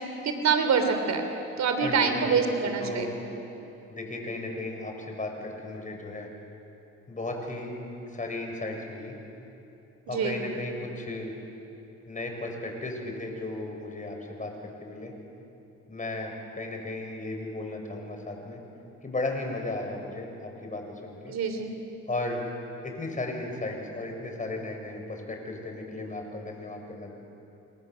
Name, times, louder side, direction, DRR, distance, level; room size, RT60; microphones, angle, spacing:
voice 1, 0.2-1.2 1.6-3.1 10.1-10.4 21.3-21.7, right 6 dB, 65° right, 6 dB, 3.5 m, -25 dB
voice 2, 1.8-3.1 3.9-6.3 7.1-7.7 8.1-9.1 10.1-11.3 12.1-15.1 15.9-18.6 19.0-21.3 22.1-22.4 22.8-27.1, left 2 dB, 25° left, 2 dB, 6.4 m, -35 dB
29.0 x 26.5 x 7.7 m, 3.0 s
cardioid pair, 90°, 30 cm